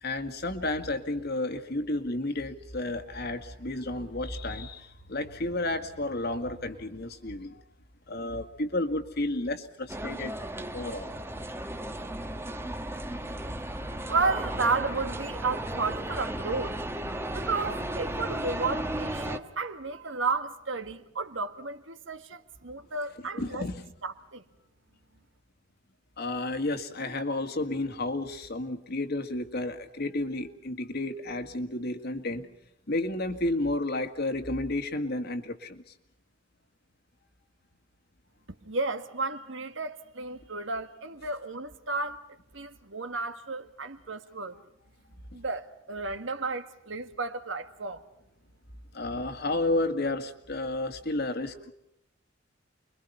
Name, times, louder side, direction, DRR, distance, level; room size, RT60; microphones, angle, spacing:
voice 1, 0.0-7.6 8.1-10.3 10.7-11.2 23.3-23.8 26.2-32.5 32.9-35.8 48.9-51.7, left 2 dB, 55° left, 2.1 m, -31 dB
sound 1, 9.9-19.4, right 1 dB, 15° right, 1.3 m, -35 dB
voice 2, 14.1-16.8 17.3-23.7 24.0-24.4 38.6-42.2 42.5-44.6 45.3-48.1, right 3 dB, 75° right, 1.8 m, -32 dB
30.0 x 23.0 x 5.6 m
head